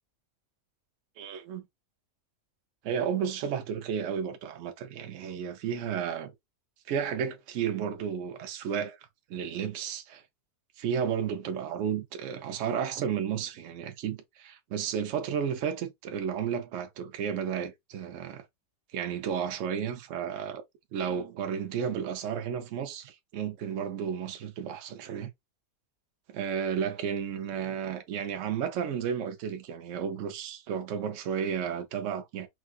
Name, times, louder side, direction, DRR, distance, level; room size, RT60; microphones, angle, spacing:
voice 1, 1.2-1.6 2.8-6.3 6.9-9.0 9.3-10.2 10.8-18.4 18.9-20.6 20.9-25.3 26.3-32.5, right 8 dB, 65° right, 0.9 m, -32 dB
4.7 x 2.3 x 2.3 m
omnidirectional pair, 1.6 m